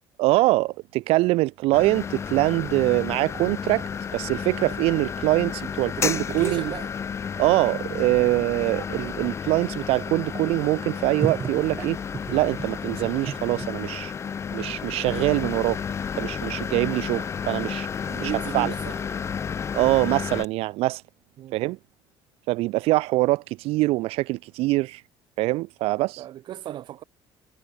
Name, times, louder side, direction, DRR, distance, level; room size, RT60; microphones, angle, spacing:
voice 1, 0.2-6.6 7.4-12.0 12.3-14.1 14.5-15.8 16.1-17.9 18.2-18.7 19.7-21.0 21.5-21.8 22.5-25.0 25.4-26.2, right 20 dB, 85° right, 0.6 m, -24 dB
sound 1, 1.7-20.4, left 7 dB, 30° left, 3.1 m, -32 dB
voice 2, 6.0-6.9 18.1-19.0 21.4-21.5 26.2-27.0, right 12 dB, 50° right, 2.0 m, -35 dB
sound 2, 9.0-13.7 14.2-14.4 15.1-15.2 15.4-20.3, right 6 dB, 25° right, 0.8 m, -37 dB
cardioid pair, 170°, 10 cm